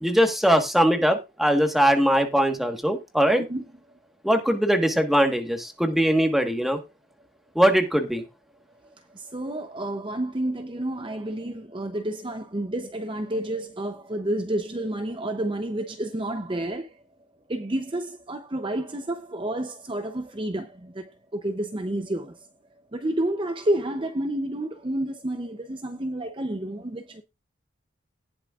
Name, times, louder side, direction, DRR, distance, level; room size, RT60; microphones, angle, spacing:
voice 1, 0.0-3.4 4.2-6.8 7.5-8.2, equal, ahead, 1.4 m, -21 dB
voice 2, 3.4-3.8 9.1-17.0 17.5-22.5 22.9-27.2, right 1 dB, 25° right, 0.6 m, -30 dB
18.5 x 6.2 x 2.4 m
head